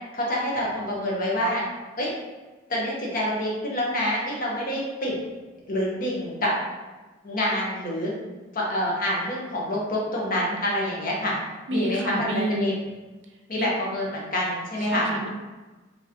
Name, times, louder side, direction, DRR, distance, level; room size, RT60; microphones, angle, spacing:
voice 1, 0.1-1.6 2.0-2.1 2.7-5.2 5.7-6.5 7.2-8.1 8.5-11.3 11.7-12.7 13.5-15.1, left 1 dB, 45° left, -4 dB, 1.2 m, -27 dB
voice 2, 11.7-12.8 13.5-13.7 14.8-15.3, right 1 dB, 70° right, 3 dB, 0.7 m, -29 dB
5.1 x 3.1 x 2.9 m, 1.3 s
head